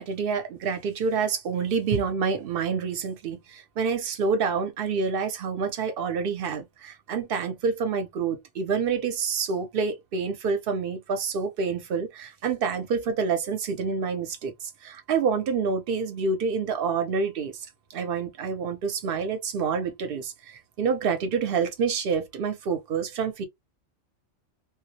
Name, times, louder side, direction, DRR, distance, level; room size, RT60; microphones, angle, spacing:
voice 1, 0.0-17.7 17.9-23.4, right 5 dB, 60° right, 0.7 m, -27 dB
2.2 x 2.0 x 2.7 m
omnidirectional pair, 1.2 m